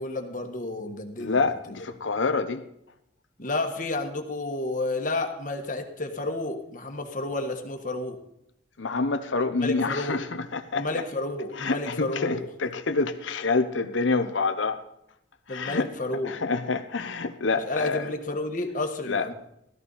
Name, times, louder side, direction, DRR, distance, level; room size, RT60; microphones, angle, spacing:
voice 1, 0.0-1.4 3.4-8.2 9.6-10.2 10.7-12.5 14.2-14.3 15.5-16.4 17.6-19.3, left 2 dB, 40° left, 1.5 m, -31 dB
voice 2, 1.2-2.6 8.8-11.0 11.6-14.8 15.5-15.9 16.2-18.1 19.1-19.3, left 4 dB, 80° left, 0.8 m, -27 dB
17.0 x 13.5 x 4.1 m
head